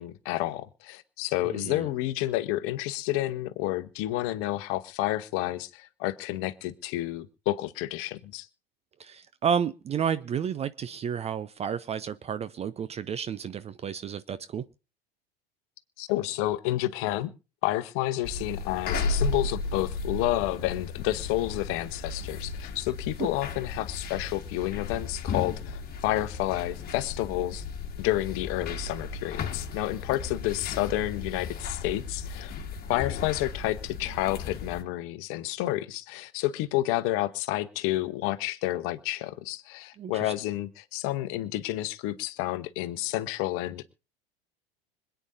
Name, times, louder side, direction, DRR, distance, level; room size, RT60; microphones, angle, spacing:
voice 1, 0.0-8.5 16.0-17.3 17.6-27.6 28.0-32.5 32.9-43.8, left 15 dB, 45° left, 13 dB, 1.1 m, -30 dB
voice 2, 1.5-1.8 9.0-14.6 40.0-40.3, right 7 dB, 20° right, 14 dB, 0.5 m, -31 dB
sound 1, 18.2-34.8, left 4 dB, 30° left, 2.1 m, -35 dB
25.5 x 9.1 x 2.7 m, 0.34 s
figure-of-eight pair, 80°, 30 cm